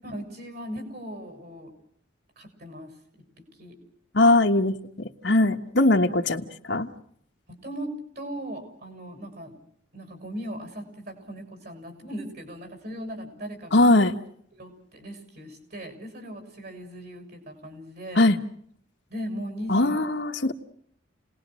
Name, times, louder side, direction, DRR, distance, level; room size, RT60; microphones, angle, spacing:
voice 1, 0.0-1.7 2.4-3.2 3.6-3.8 7.5-9.6 9.9-14.1 14.5-18.2 19.1-20.0, equal, 55° right, 6 dB, 6.8 m, -38 dB
voice 2, 4.1-6.9 13.7-14.1 18.1-18.4 19.7-20.5, left 2 dB, 65° left, 5 dB, 1.4 m, -21 dB
30.0 x 20.0 x 6.3 m, 0.67 s
head